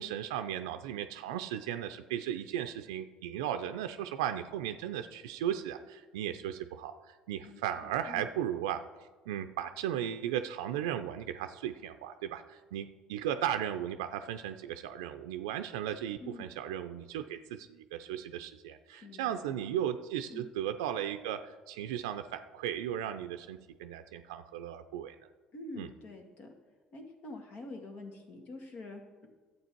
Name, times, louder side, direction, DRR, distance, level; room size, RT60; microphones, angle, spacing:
voice 1, 0.0-8.8 9.3-25.2 25.8-25.9, right 10 dB, 85° right, 8 dB, 0.5 m, -36 dB
voice 2, 7.4-8.3 16.2-16.5 19.0-19.7 20.3-20.5 25.5-26.5 26.9-29.3, left 2 dB, 60° left, 3 dB, 2.1 m, -46 dB
11.5 x 7.8 x 4.5 m, 1.3 s
hypercardioid pair, 70°, 2 cm